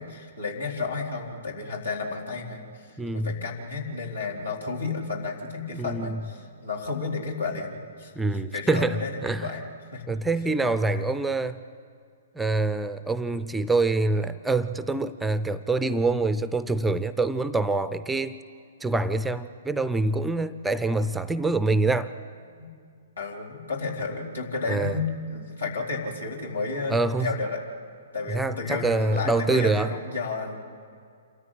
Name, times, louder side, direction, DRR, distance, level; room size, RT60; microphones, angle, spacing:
voice 1, 0.0-9.6 9.9-10.2 10.9-11.1 22.6-22.7 23.2-27.6 28.1-30.6, left 4 dB, 80° left, -2 dB, 4.1 m, -32 dB
voice 2, 3.0-3.3 5.7-6.2 8.2-9.5 10.1-11.6 12.3-18.4 18.8-22.1 24.7-25.0 26.9-27.3 28.3-29.9, right 3 dB, 5° right, 14 dB, 0.5 m, -25 dB
27.0 x 14.0 x 9.1 m, 2.3 s
figure-of-eight pair, 120°, 0 cm